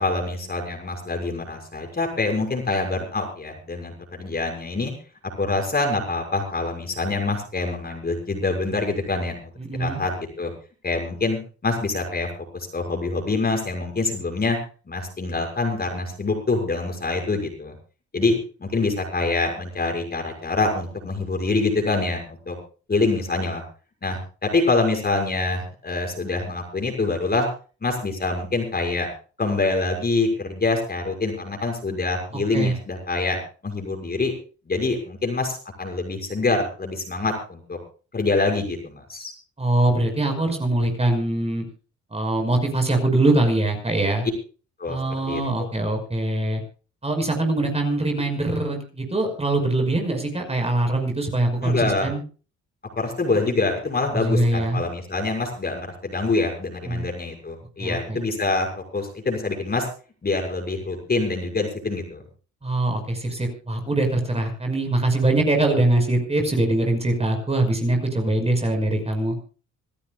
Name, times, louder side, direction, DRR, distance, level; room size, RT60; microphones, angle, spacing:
voice 1, 0.0-4.9 5.4-9.4 9.8-10.5 10.8-12.3 12.5-14.6 14.9-17.7 18.1-18.3 18.6-22.6 22.9-23.6 24.0-27.5 27.8-29.1 29.4-33.4 33.6-34.3 34.7-37.8 38.1-39.3 44.8-45.0 45.3-45.7 51.6-52.1 53.0-58.7 58.9-59.9 60.2-62.2, left 3 dB, 30° left, 3 dB, 6.2 m, -25 dB
voice 2, 9.6-10.0 32.5-32.8 39.6-41.6 42.1-44.3 44.9-46.6 47.0-52.2 54.1-54.8 56.8-57.0 57.8-58.2 62.6-69.4, right 2 dB, 20° right, 4 dB, 5.6 m, -23 dB
26.5 x 13.5 x 2.4 m, 0.37 s
cardioid pair, 90°, 30 cm